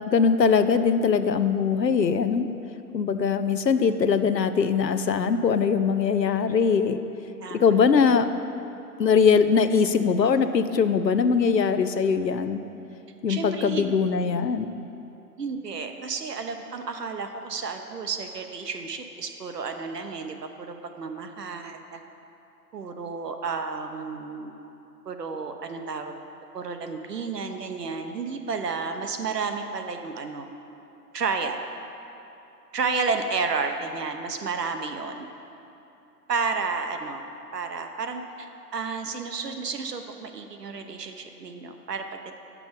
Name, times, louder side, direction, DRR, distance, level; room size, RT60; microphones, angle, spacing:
voice 1, 0.0-2.5 2.9-7.0 7.5-8.3 9.0-12.6 13.2-14.7, left 6 dB, 90° left, 10 dB, 0.6 m, -21 dB
voice 2, 13.3-13.9 15.4-22.0 22.7-24.6 25.1-26.2 26.5-30.5 31.1-31.6 32.7-35.3 36.3-37.2 37.5-42.4, right 4 dB, 75° right, 6 dB, 1.0 m, -31 dB
9.2 x 6.0 x 5.1 m, 2.9 s
figure-of-eight pair, 125°, 49 cm